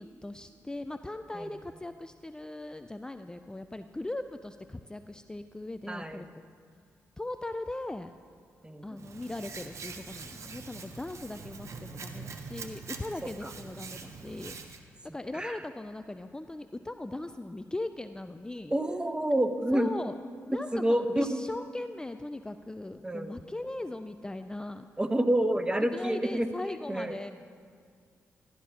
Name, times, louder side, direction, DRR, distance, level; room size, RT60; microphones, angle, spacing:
voice 1, 0.0-6.3 7.2-8.1 8.8-18.7 19.7-20.1 20.5-24.8 25.8-27.3, left 2 dB, 15° left, 9 dB, 0.4 m, -39 dB
voice 2, 5.9-6.2 8.6-8.8 13.4-13.5 15.3-15.6 18.7-19.9 20.7-21.3 23.0-23.4 25.0-26.5 26.9-27.1, right 1 dB, 15° right, 9 dB, 0.8 m, -28 dB
Hands, 9.0-14.8, right 4 dB, 60° right, 0.9 m, -44 dB
12.5 x 11.5 x 2.8 m, 2.1 s
supercardioid pair, 50°, 6 cm